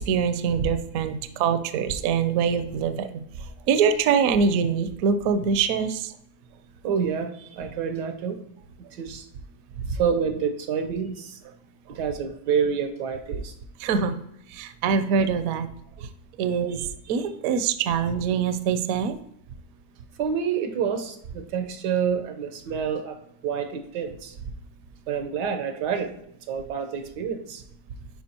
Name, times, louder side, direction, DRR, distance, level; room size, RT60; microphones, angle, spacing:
voice 1, 0.0-3.1 3.7-6.1 13.8-14.2 14.5-15.7 16.4-16.8 17.1-19.2, right 6 dB, 70° right, 10 dB, 0.9 m, -24 dB
voice 2, 6.8-8.4 8.9-9.3 9.9-11.4 11.9-13.5 16.0-16.1 16.7-16.9 20.2-23.2 23.4-24.4 25.1-26.1 26.5-27.6, right 7 dB, 85° right, 7 dB, 1.5 m, -28 dB
10.5 x 4.7 x 2.8 m, 0.77 s
omnidirectional pair, 1.8 m